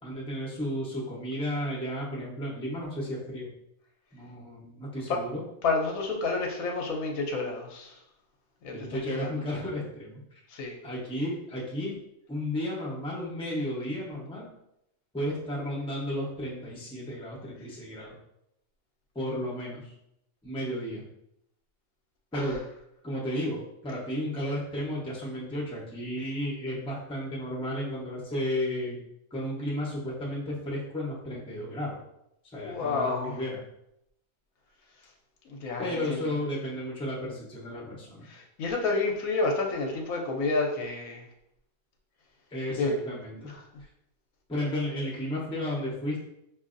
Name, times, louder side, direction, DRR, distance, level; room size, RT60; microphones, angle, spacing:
voice 1, 0.0-3.5 4.1-5.4 8.7-10.2 10.8-12.0 12.3-14.5 15.1-18.1 19.1-19.9 20.4-21.0 22.3-22.6 23.0-29.0 29.3-32.0 32.5-33.6 35.8-38.2 42.5-43.5 44.5-46.2, left 1 dB, 5° left, -5 dB, 0.6 m, -33 dB
voice 2, 5.6-7.9 8.6-9.3 10.5-10.7 22.3-22.4 32.5-33.3 35.5-36.3 38.3-41.2 42.8-42.9 43.4-43.5, left 3 dB, 75° left, 1 dB, 1.0 m, -30 dB
4.7 x 2.6 x 2.5 m, 0.80 s
omnidirectional pair, 1.5 m